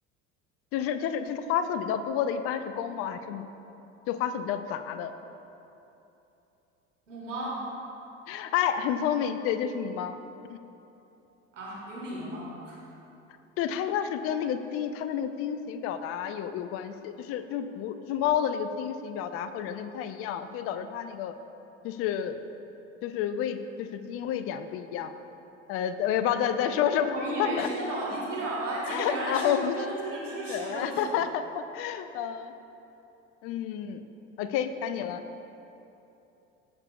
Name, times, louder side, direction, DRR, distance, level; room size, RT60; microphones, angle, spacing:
voice 1, 0.7-3.5 4.1-5.1 8.3-10.2 10.5-10.6 13.6-21.3 21.8-22.4 23.0-25.1 25.7-27.7 28.9-29.8 30.5-32.5 33.4-34.0 34.4-35.2, left 8 dB, 40° left, 10 dB, 0.5 m, -30 dB
voice 2, 7.1-7.7 11.5-12.8 27.1-31.2, right 1 dB, 75° right, -5 dB, 1.7 m, -34 dB
14.0 x 6.6 x 2.3 m, 3.0 s
figure-of-eight pair, 65°, 38 cm